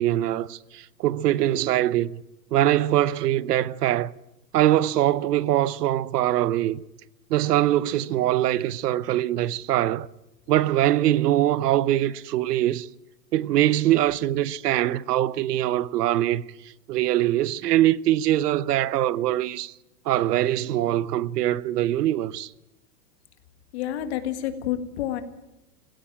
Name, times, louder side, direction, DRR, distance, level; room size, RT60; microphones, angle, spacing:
voice 1, 0.0-2.2 2.5-4.1 4.5-6.8 7.3-10.1 10.5-12.9 13.3-16.4 16.9-19.7 20.1-22.5, right 13 dB, 75° right, 0.9 m, -23 dB
voice 2, 23.7-25.2, left 11 dB, 45° left, 1.8 m, -29 dB
17.5 x 17.0 x 8.8 m
supercardioid pair, 180°, 47 cm